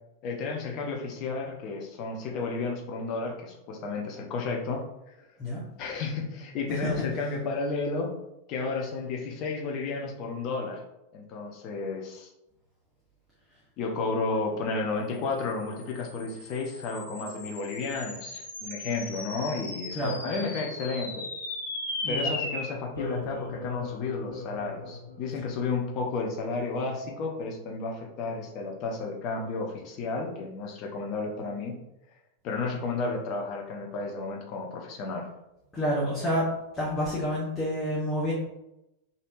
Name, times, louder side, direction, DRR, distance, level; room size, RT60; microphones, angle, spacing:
voice 1, 0.2-4.8 5.8-8.1 8.5-10.8 11.1-12.3 13.8-21.2 22.1-31.7 32.4-35.3, left 3 dB, 40° left, 1 dB, 0.7 m, -32 dB
sound 1, 15.5-26.1, left 2 dB, 75° left, 0.7 m, -38 dB
voice 2, 35.7-38.3, equal, 15° left, -7 dB, 0.9 m, -29 dB
3.4 x 2.6 x 2.5 m, 0.89 s
figure-of-eight pair, 90°, 0 cm